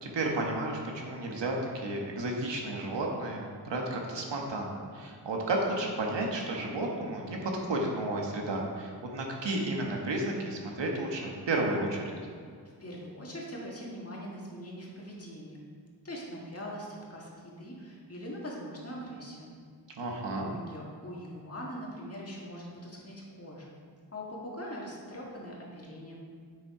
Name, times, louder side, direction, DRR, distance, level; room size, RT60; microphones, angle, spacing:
voice 1, 0.0-12.1 20.0-20.5, right 2 dB, 85° right, 0 dB, 1.5 m, -32 dB
voice 2, 12.8-15.6 16.0-19.5 20.4-23.7 24.1-26.2, equal, 35° left, -4 dB, 1.8 m, -42 dB
9.2 x 6.2 x 4.8 m, 2.1 s
wide cardioid pair, 165°, 42 cm